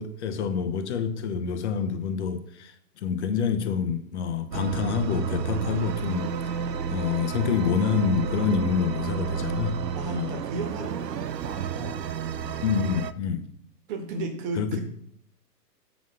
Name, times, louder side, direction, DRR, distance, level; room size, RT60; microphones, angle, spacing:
voice 1, 0.0-10.4 12.6-13.5 14.6-14.8, left 6 dB, 40° left, 0.9 m, -27 dB
sound 1, 4.5-13.1, right 6 dB, 75° right, 0.7 m, -31 dB
voice 2, 9.9-12.0 13.9-14.8, right 2 dB, 30° right, 1.5 m, -35 dB
7.2 x 4.0 x 6.3 m
figure-of-eight pair, 120°, 50 cm